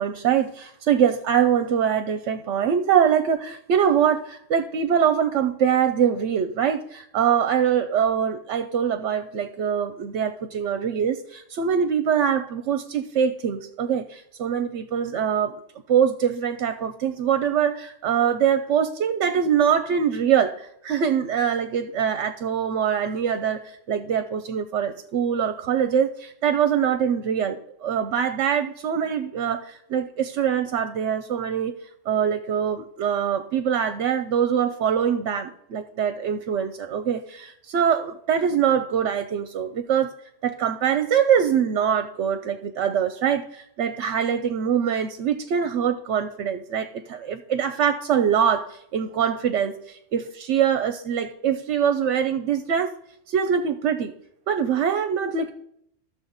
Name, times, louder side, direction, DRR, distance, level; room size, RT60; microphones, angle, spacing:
voice 1, 0.0-15.6 15.9-31.7 32.1-40.1 40.4-52.9 53.3-54.1 54.5-55.5, right 8 dB, 70° right, 10 dB, 0.9 m, -23 dB
12.5 x 6.8 x 4.0 m, 0.73 s
omnidirectional pair, 1.3 m